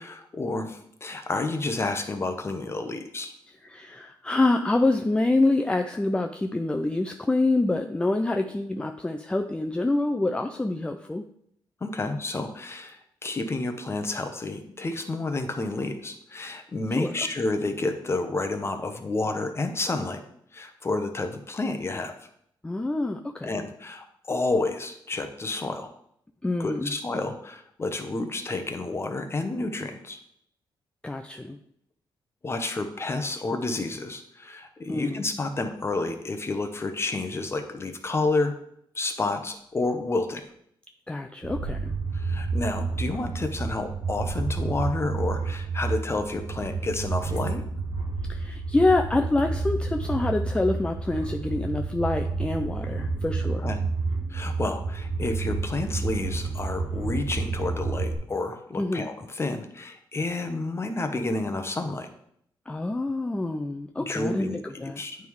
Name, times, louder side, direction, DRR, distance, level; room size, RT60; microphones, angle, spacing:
voice 1, 0.0-3.3 11.8-20.2 20.5-22.1 23.4-25.9 26.6-30.2 32.4-38.6 38.9-40.4 42.1-47.7 53.6-53.8 54.3-62.1 64.0-65.2, left 2 dB, 30° left, 7 dB, 1.0 m, -30 dB
voice 2, 3.6-11.2 17.0-17.1 22.6-23.6 26.4-27.0 31.0-31.6 34.9-35.2 41.1-41.9 48.3-53.7 58.8-59.1 62.7-64.5 64.8-65.0, left 2 dB, 10° left, 4 dB, 0.4 m, -26 dB
sound 1, 41.4-58.1, right 4 dB, 75° right, 1.8 m, -30 dB
9.2 x 3.6 x 4.7 m, 0.70 s
cardioid pair, 85°, 9 cm